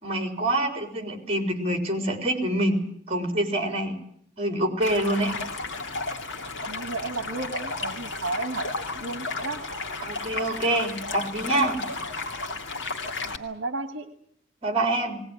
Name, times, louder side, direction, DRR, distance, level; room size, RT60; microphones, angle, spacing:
voice 1, 0.0-4.0 4.4-5.3 10.0-11.8 14.6-15.2, right 1 dB, 30° right, 5 dB, 4.0 m, -26 dB
Stream, 4.8-13.4, left 3 dB, 65° left, 2.3 m, -33 dB
voice 2, 6.7-8.7 8.9-9.6 13.2-14.1, right 3 dB, 70° right, 8 dB, 1.4 m, -33 dB
20.0 x 18.5 x 10.0 m, 0.69 s
head